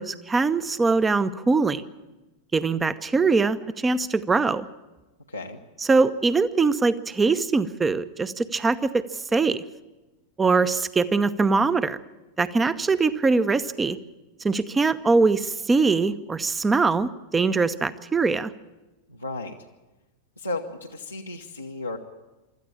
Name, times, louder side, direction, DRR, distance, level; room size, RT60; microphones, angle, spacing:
voice 1, 0.0-1.8 2.5-4.7 5.9-9.6 10.4-12.0 12.4-14.0 14.4-18.5, right 4 dB, 15° right, 14 dB, 0.9 m, -22 dB
voice 2, 5.3-5.6 19.1-19.6 20.4-22.0, left 2 dB, 90° left, -2 dB, 1.1 m, -34 dB
25.5 x 13.5 x 8.7 m, 1.1 s
figure-of-eight pair, 90°, 0 cm